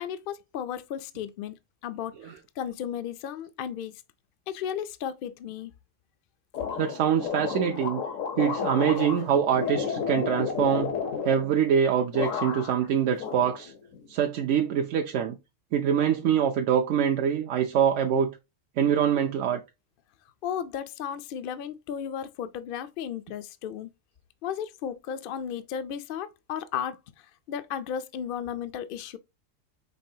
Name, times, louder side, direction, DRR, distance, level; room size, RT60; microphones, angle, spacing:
voice 1, 0.0-1.6 1.8-4.0 4.5-5.7 20.4-23.9 24.4-29.2, left 8 dB, 65° left, 0.5 m, -34 dB
sound 1, 6.5-11.8 12.1-12.9 13.2-14.1, left 6 dB, 80° left, 1.3 m, -32 dB
voice 2, 6.8-8.0 8.4-10.9 11.2-13.7 14.1-15.4 15.7-18.3 18.8-19.6, right 8 dB, 75° right, 0.9 m, -24 dB
5.3 x 3.3 x 2.7 m
omnidirectional pair, 1.3 m